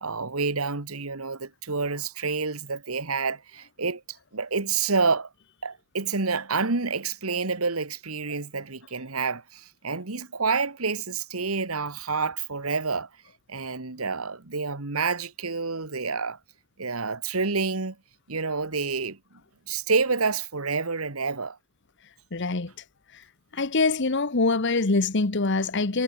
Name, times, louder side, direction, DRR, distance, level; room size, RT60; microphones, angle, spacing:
voice 1, 0.0-4.0 4.3-5.3 5.6-13.1 13.5-16.4 16.8-18.0 18.3-19.2 19.7-21.6, right 4 dB, 85° right, 1.9 m, -28 dB
voice 2, 22.3-22.7 23.5-26.0, left 3 dB, 55° left, 1.2 m, -24 dB
head